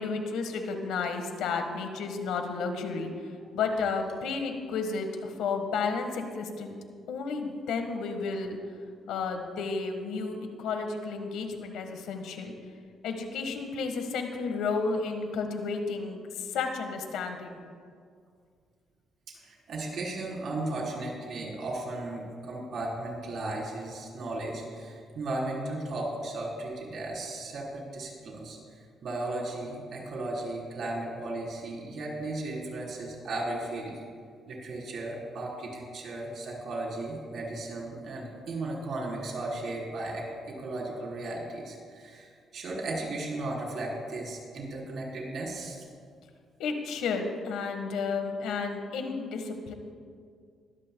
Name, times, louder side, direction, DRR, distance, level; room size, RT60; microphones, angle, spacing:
voice 1, 0.0-6.8 7.1-8.6 9.1-12.5 13.0-17.6 46.6-49.7, left 4 dB, 90° left, 5 dB, 1.5 m, -32 dB
voice 2, 19.3-34.0 34.5-45.8, right 2 dB, 65° right, -2 dB, 3.9 m, -35 dB
21.0 x 14.0 x 2.3 m, 2.1 s
cardioid pair, 90°, 0 cm